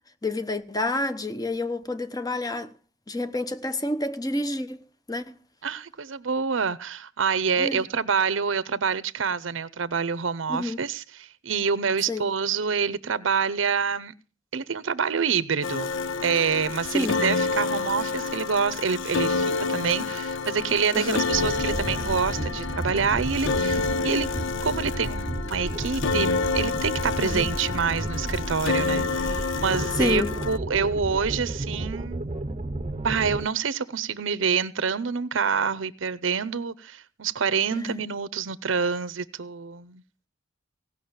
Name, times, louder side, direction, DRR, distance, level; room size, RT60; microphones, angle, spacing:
voice 1, 0.2-2.7 3.1-4.8 5.1-5.3 7.6-7.8 10.5-10.8 12.1-12.2 16.9-17.2 20.9-21.2 27.2-27.5 30.0-30.3 37.7-38.0, left 2 dB, 20° left, 0.9 m, -28 dB
voice 2, 5.6-14.1 14.5-15.9 16.2-24.3 24.6-32.3 33.0-40.0, right 6 dB, 80° right, 0.7 m, -27 dB
sound 1, 15.6-30.6, left 4 dB, 75° left, 0.6 m, -29 dB
sound 2, 21.3-33.5, right 1 dB, 30° right, 0.8 m, -32 dB
17.0 x 6.1 x 8.8 m
head